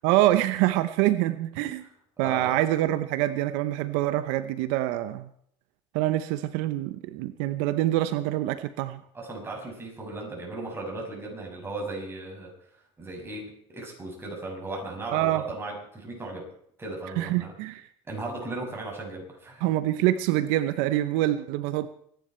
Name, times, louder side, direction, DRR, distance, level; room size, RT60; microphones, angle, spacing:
voice 1, 0.0-1.8 2.2-5.3 5.9-9.0 15.1-15.4 17.2-17.9 19.6-21.9, right 14 dB, 80° right, 13 dB, 0.8 m, -25 dB
voice 2, 2.2-2.5 9.1-12.5 13.0-16.5 16.8-17.5 18.1-19.6, right 2 dB, 20° right, 0 dB, 6.4 m, -36 dB
24.0 x 10.5 x 4.4 m, 0.67 s
supercardioid pair, 110°, 13 cm